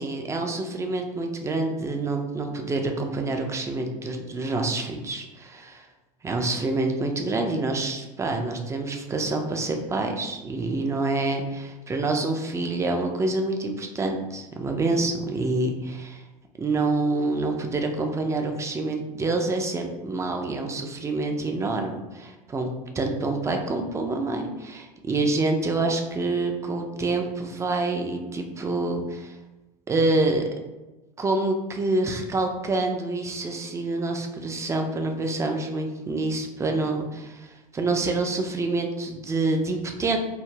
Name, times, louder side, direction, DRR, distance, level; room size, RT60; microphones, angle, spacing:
voice 1, 0.0-5.9 6.2-16.2 16.6-22.7 22.9-29.4 29.9-30.5 31.2-40.2, right 2 dB, 15° right, 3 dB, 0.4 m, -27 dB
2.3 x 2.0 x 3.1 m, 1.1 s
hypercardioid pair, 85°, 21 cm